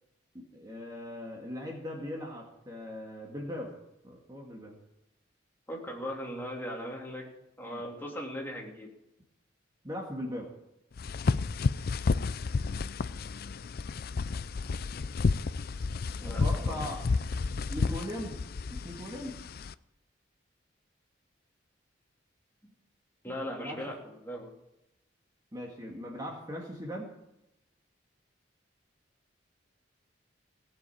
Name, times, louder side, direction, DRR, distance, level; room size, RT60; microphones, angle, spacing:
voice 1, 0.3-3.8 4.0-4.8 7.7-7.8 9.8-10.5 16.2-17.0 17.7-18.4 18.7-19.4 23.6-23.8 25.5-27.1, equal, 20° right, -1 dB, 2.0 m, -39 dB
voice 2, 5.7-7.3 7.6-8.9 16.2-16.8 23.2-24.5, equal, 10° left, -2 dB, 3.1 m, -39 dB
sound 1, 11.0-19.7, left 4 dB, 50° left, 0.4 m, -31 dB
17.5 x 7.4 x 8.5 m, 0.89 s
head